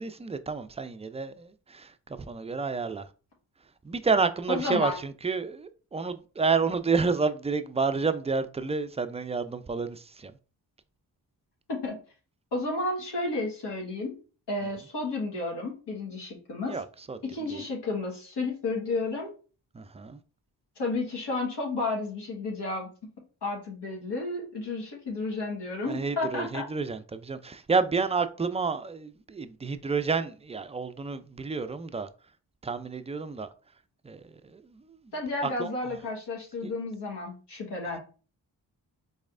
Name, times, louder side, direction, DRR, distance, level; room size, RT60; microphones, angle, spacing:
voice 1, 0.0-3.1 3.8-10.3 16.7-17.2 17.5-17.6 19.7-20.2 25.9-32.1 32.6-33.5 34.0-35.1 35.4-35.7 36.6-36.7, right 4 dB, 15° right, 0.3 m, -30 dB
voice 2, 4.5-5.0 11.7-12.0 12.5-14.1 14.5-16.8 17.2-19.3 20.8-22.9 23.4-26.7 35.1-38.0, left 2 dB, 65° left, 1.3 m, -32 dB
4.2 x 3.1 x 2.5 m
supercardioid pair, 40°, 44 cm